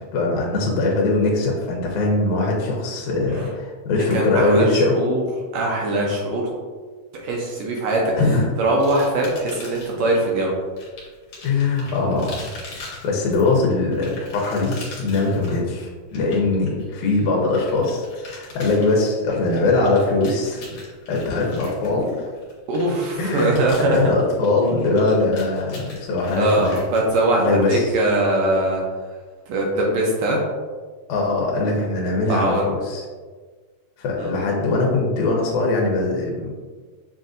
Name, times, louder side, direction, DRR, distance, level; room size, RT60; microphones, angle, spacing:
voice 1, 0.1-5.0 8.2-8.5 11.4-20.8 21.1-22.1 23.2-26.8 27.3-27.9 31.1-33.0 34.0-36.5, left 3 dB, 75° left, -2 dB, 2.0 m, -21 dB
voice 2, 4.1-5.2 5.5-6.5 7.2-8.1 8.6-10.5 21.4-21.5 22.7-24.1 26.4-28.8 29.5-30.4 32.3-32.6 34.2-34.3, right 1 dB, 75° right, -2 dB, 1.6 m, -21 dB
sound 1, 8.8-10.1 10.8-27.6, left 3 dB, 60° left, 2.0 m, -42 dB
6.8 x 2.5 x 2.5 m, 1.5 s
omnidirectional pair, 3.6 m